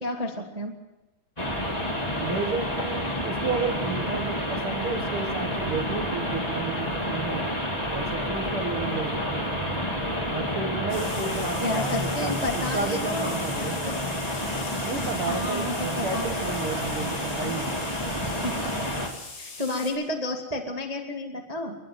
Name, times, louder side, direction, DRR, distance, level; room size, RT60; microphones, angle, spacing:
voice 1, 0.0-0.7 11.6-13.4 13.8-13.9 15.2-16.3 18.2-18.9 19.4-21.8, left 1 dB, 40° right, 1 dB, 0.5 m, -31 dB
sound 1, 1.4-19.1, left 1 dB, 15° left, 1.7 m, -29 dB
voice 2, 2.2-7.5 7.9-9.8 10.2-13.8 14.8-17.8 18.5-19.1, right 4 dB, 85° right, 2 dB, 1.2 m, -32 dB
sound 2, 10.9-19.9, left 3 dB, 85° left, 9.6 m, -40 dB
28.5 x 12.0 x 7.6 m, 1.0 s
omnidirectional pair, 5.2 m